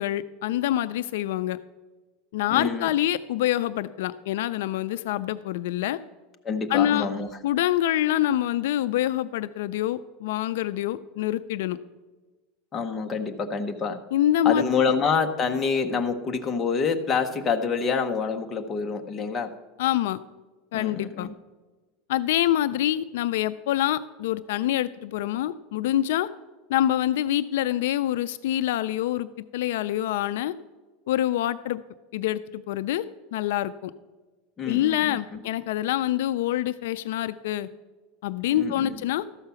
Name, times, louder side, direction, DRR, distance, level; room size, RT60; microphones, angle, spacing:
voice 1, 0.0-1.6 2.3-6.0 6.7-7.1 7.4-11.8 14.1-14.7 19.8-20.2 20.7-21.3 22.1-26.3 26.7-30.5 31.1-31.8 32.1-33.1 33.3-33.9 34.7-37.7 38.2-39.2, left 12 dB, 75° left, 14 dB, 0.3 m, -26 dB
voice 2, 2.5-2.9 6.4-7.3 12.7-14.0 14.4-19.5 20.7-21.3 34.6-35.4 38.5-39.0, left 5 dB, 20° left, 4 dB, 0.7 m, -27 dB
13.0 x 5.7 x 6.9 m, 1.3 s
supercardioid pair, 170°, 0 cm